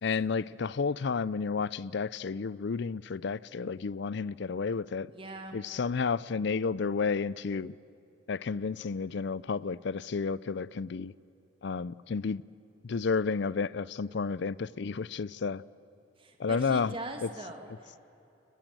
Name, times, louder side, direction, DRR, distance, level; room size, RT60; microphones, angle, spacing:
voice 1, 0.0-5.1 5.5-7.7 8.3-11.1 11.6-12.4 12.8-15.6 16.4-16.9 17.2-17.3, left 5 dB, 60° left, 0.5 m, -31 dB
voice 2, 5.1-5.6 16.2-18.0, right 2 dB, 25° right, 2.3 m, -41 dB
30.0 x 21.0 x 7.8 m
head